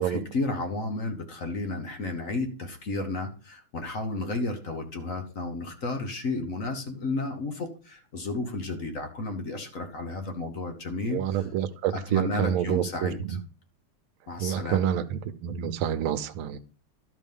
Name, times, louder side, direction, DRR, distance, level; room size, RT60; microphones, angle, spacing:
voice 1, 0.0-11.4 12.1-13.4 14.3-14.9, left 2 dB, 45° left, 1.3 m, -32 dB
voice 2, 11.1-13.4 14.4-16.6, right 9 dB, 75° right, 1.6 m, -28 dB
11.5 x 5.0 x 5.4 m
omnidirectional pair, 2.4 m